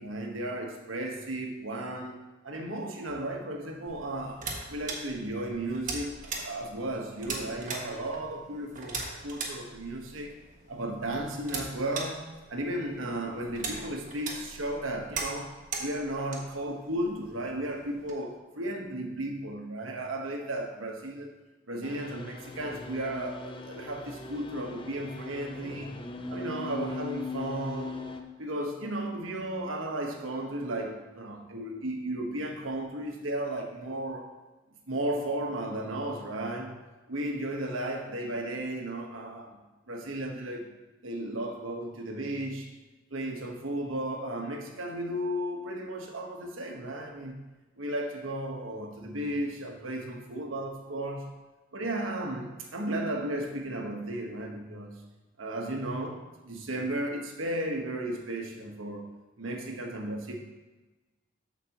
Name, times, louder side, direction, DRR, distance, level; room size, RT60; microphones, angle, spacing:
voice 1, 0.0-2.2 2.4-10.3 10.7-12.2 12.5-21.3 21.7-26.0 26.3-28.0 28.4-34.3 34.9-36.8 37.1-39.6 39.9-40.7 41.0-42.7 43.1-47.4 47.8-51.3 51.7-55.0 55.4-59.1 59.4-60.3, right 1 dB, 90° right, 2 dB, 1.2 m, -34 dB
sound 1, 3.9-18.1, right 3 dB, 40° right, 1.3 m, -40 dB
sound 2, 21.8-28.2, left 3 dB, 25° left, 0.6 m, -40 dB
13.5 x 5.1 x 3.0 m, 1.1 s
head